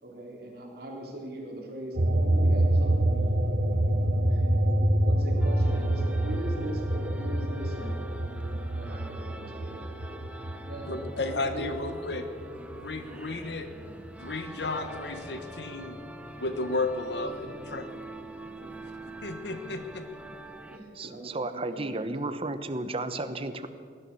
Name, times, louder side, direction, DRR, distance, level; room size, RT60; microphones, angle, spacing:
voice 1, 0.0-3.1 4.3-8.0 8.7-9.9 10.7-11.7 13.7-13.8 17.1-17.5 18.4-18.7 19.7-19.9 20.7-22.3, right 1 dB, 60° right, -1 dB, 3.6 m, -41 dB
sound 1, 1.9-12.8 13.2-14.7, right 1 dB, 80° right, 1.2 m, -27 dB
sound 2, 5.4-20.8, right 1 dB, 10° right, 0.9 m, -45 dB
voice 2, 10.9-12.3 12.7-13.7 14.2-16.0 16.4-17.8 19.2-20.1, left 2 dB, 75° left, 8 dB, 1.2 m, -33 dB
Acoustic guitar, 14.6-18.9 19.8-19.9, left 1 dB, 50° left, 4.3 m, -50 dB
voice 3, 20.9-23.7, right 2 dB, 35° right, 10 dB, 0.9 m, -33 dB
18.5 x 11.5 x 6.9 m, 2.1 s
head